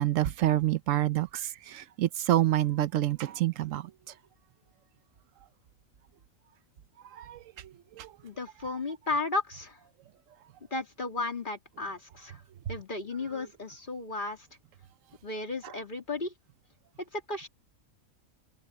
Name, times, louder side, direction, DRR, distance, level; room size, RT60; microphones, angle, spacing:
voice 1, 0.0-3.9 7.1-7.4 8.0-8.1, right 13 dB, 70° right, 1.1 m, -27 dB
voice 2, 8.2-9.8 10.7-12.4 12.7-14.5 15.2-16.3 17.1-17.5, left 3 dB, 35° left, 2.9 m, -34 dB
omnidirectional pair, 1.4 m